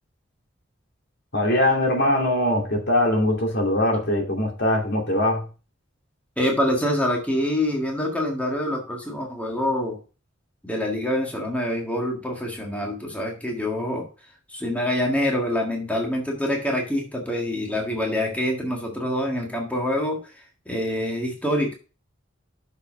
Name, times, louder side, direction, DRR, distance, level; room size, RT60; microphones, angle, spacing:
voice 1, 1.3-5.5, left 1 dB, 60° left, 2.7 m, -22 dB
voice 2, 6.4-10.0 10.6-14.1 14.5-21.7, left 1 dB, 10° left, 1.7 m, -26 dB
6.5 x 5.5 x 5.8 m
head